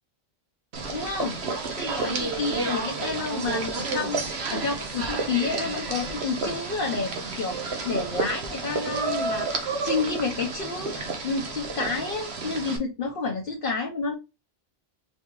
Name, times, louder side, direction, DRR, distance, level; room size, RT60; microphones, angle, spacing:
sound 1, 0.7-12.8, right 4 dB, 85° right, 1.3 m, -31 dB
voice 1, 0.9-1.4 1.8-4.2 4.5-9.5 9.8-14.1, left 4 dB, 60° left, 0 dB, 1.0 m, -30 dB
4.4 x 3.5 x 3.0 m, 0.25 s
omnidirectional pair, 1.1 m